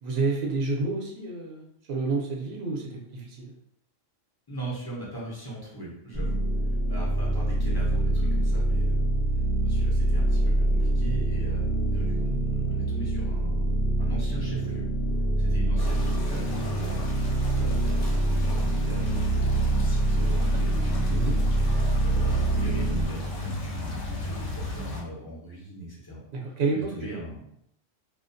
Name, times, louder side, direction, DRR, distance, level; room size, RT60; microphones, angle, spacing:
voice 1, 0.0-3.5 21.1-21.4 26.3-27.2, right 3 dB, 65° right, -1 dB, 0.8 m, -29 dB
voice 2, 4.5-6.4 6.9-9.0 9.6-13.7 14.0-14.9 15.4-17.1 17.5-21.2 22.0-26.2 26.7-27.4, right 1 dB, 25° left, -7 dB, 0.5 m, -40 dB
sound 1, 6.1-23.1, right 1 dB, 35° right, 0.7 m, -25 dB
sound 2, 15.8-25.0, left 2 dB, 75° left, 0.9 m, -36 dB
2.3 x 2.1 x 2.5 m, 0.72 s
omnidirectional pair, 1.3 m